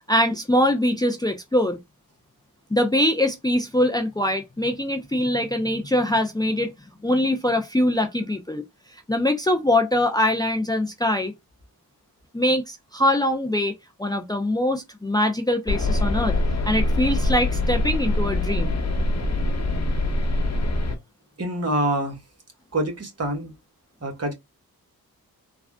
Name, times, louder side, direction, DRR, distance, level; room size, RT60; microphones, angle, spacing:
voice 1, 0.1-1.8 2.7-6.7 7.0-8.6 8.9-11.3 12.3-13.7 14.0-16.4 16.6-18.8, left 1 dB, 10° left, 0.6 m, -23 dB
sound 1, 15.7-21.0, left 2 dB, 45° left, 1.1 m, -23 dB
voice 2, 21.4-22.2 22.7-23.5 24.0-24.3, right 1 dB, 40° right, 1.4 m, -25 dB
3.4 x 2.4 x 2.2 m
cardioid pair, 55°, 38 cm